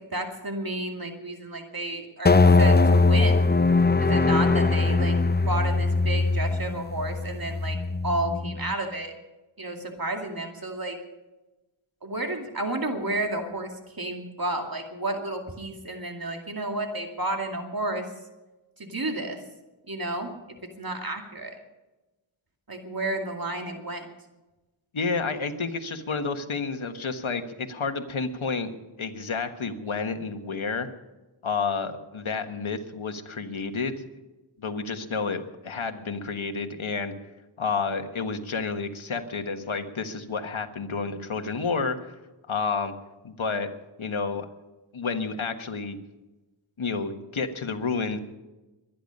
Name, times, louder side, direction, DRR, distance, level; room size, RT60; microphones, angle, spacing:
voice 1, 0.0-3.5 4.0-5.2 5.5-7.8 8.0-9.1 9.6-11.0 12.0-18.1 18.8-19.4 19.9-20.4 20.6-21.6 22.7-24.1, right 2 dB, 45° right, 3 dB, 2.4 m, -31 dB
sound 1, 2.3-8.7, left 3 dB, 20° left, 0.6 m, -21 dB
voice 2, 24.9-28.7 29.0-30.9 31.4-34.1 34.6-37.1 37.6-42.0 42.5-42.9 43.2-43.7 44.0-44.5 44.9-46.0 46.8-48.2, left 4 dB, 70° left, 6 dB, 1.5 m, -30 dB
23.0 x 10.5 x 5.4 m, 1.1 s
wide cardioid pair, 70°, 49 cm